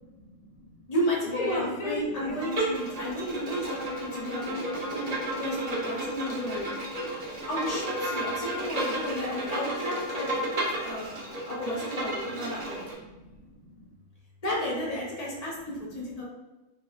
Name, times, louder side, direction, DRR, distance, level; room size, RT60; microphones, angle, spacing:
voice 1, 0.0-0.8 1.3-2.5 2.7-2.8 3.1-5.7 6.0-7.5 8.5-8.8 10.2-11.5 12.5-13.9 15.7-15.8, left 2 dB, 80° left, -2 dB, 1.0 m, -42 dB
voice 2, 0.9-4.6 4.9-6.7 7.5-10.4 10.8-11.1 11.5-12.8 14.4-16.2, equal, 40° left, -5 dB, 0.6 m, -33 dB
Bowed string instrument, 2.4-12.9, right 1 dB, 45° right, 0.5 m, -32 dB
2.6 x 2.1 x 2.4 m, 1.1 s
omnidirectional pair, 1.4 m